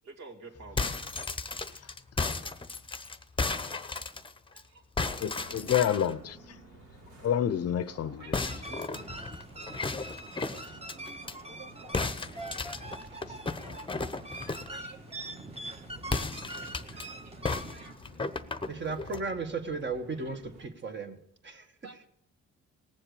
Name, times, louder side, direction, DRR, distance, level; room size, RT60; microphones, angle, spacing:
voice 1, 0.0-1.2 4.5-4.8 8.2-8.8 12.2-12.4 12.7-12.8 14.5-15.0 16.8-17.9 20.2-20.9 21.8-22.1, right 3 dB, 60° right, 2.5 m, -52 dB
sound 1, 0.6-4.6 5.0-6.1 8.3-11.4 11.9-14.8 16.0-17.1 17.4-19.3, left 3 dB, 15° left, 0.9 m, -34 dB
voice 2, 5.2-6.4 7.2-8.3, left 10 dB, 55° left, 0.7 m, -28 dB
sound 2, 5.3-20.7, right 1 dB, 80° right, 3.8 m, -54 dB
sound 3, 8.3-17.9, right 2 dB, 20° right, 1.4 m, -43 dB
voice 3, 18.7-21.2 21.4-21.7, right 4 dB, 35° right, 1.9 m, -35 dB
19.0 x 7.4 x 6.8 m
cardioid pair, 90°, 30 cm